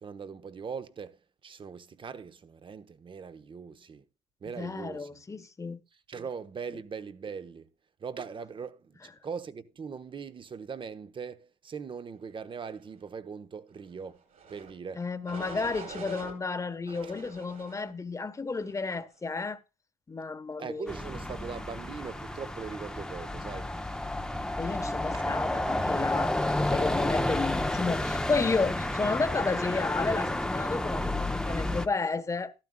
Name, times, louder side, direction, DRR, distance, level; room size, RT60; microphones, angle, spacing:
voice 1, 0.0-4.0 4.4-5.1 6.1-7.7 8.0-14.2 14.5-15.0 20.6-23.7 25.1-25.2, right 6 dB, 30° right, 1.0 m, -40 dB
voice 2, 4.5-5.8 15.0-19.6 20.1-20.9 24.6-26.3 26.7-32.5, left 4 dB, 20° left, 1.1 m, -32 dB
sound 1, 14.3-14.7 15.3-16.3 16.9-17.9 18.5-18.9, right 4 dB, 55° right, 5.1 m, -44 dB
sound 2, 20.9-31.9, left 1 dB, 5° left, 0.7 m, -31 dB
13.0 x 11.5 x 2.3 m
supercardioid pair, 85°, 16 cm